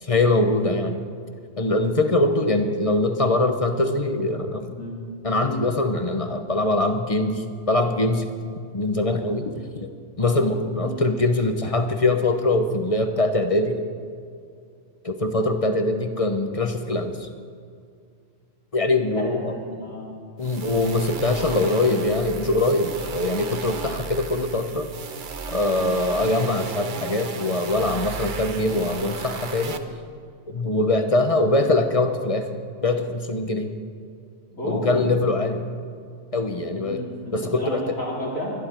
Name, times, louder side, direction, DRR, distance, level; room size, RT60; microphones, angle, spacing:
voice 1, 0.0-1.0 1.6-4.7 5.2-8.3 8.7-9.5 9.8-9.9 10.2-13.8 15.0-17.3 18.7-19.6 20.4-24.9 25.5-29.8 30.5-32.5 32.8-33.7 34.6-35.6 36.3-37.1 37.3-37.9, left 2 dB, 30° left, 7 dB, 0.8 m, -23 dB
voice 2, 10.8-11.2 19.2-20.1 34.5-35.0 36.7-38.5, equal, 90° left, -6 dB, 4.7 m, -32 dB
sound 1, 20.4-29.8, right 5 dB, 45° right, 0.8 m, -34 dB
24.0 x 10.5 x 4.4 m, 2.3 s
omnidirectional pair, 1.4 m